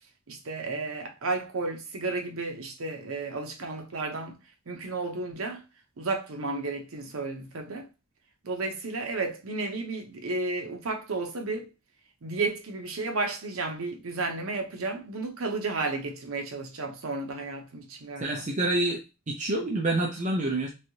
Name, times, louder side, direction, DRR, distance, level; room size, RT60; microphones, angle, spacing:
voice 1, 0.3-4.4 4.7-5.6 6.0-7.9 8.4-11.7 12.2-18.4, right 3 dB, 80° right, 0.7 m, -32 dB
voice 2, 18.2-19.0 19.3-20.7, right 2 dB, 35° right, 0.5 m, -27 dB
3.1 x 2.7 x 2.8 m
head